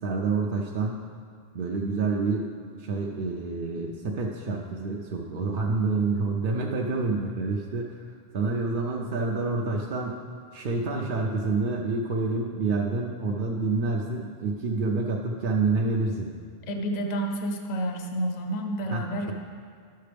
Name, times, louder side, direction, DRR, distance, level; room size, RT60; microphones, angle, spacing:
voice 1, 0.0-1.0 1.5-2.5 2.7-10.2 10.5-16.3 18.9-19.3, right 3 dB, 60° right, -1 dB, 0.7 m, -28 dB
voice 2, 16.7-19.3, right 1 dB, 45° left, 4 dB, 0.8 m, -29 dB
11.5 x 6.6 x 3.4 m, 2.1 s
omnidirectional pair, 1.0 m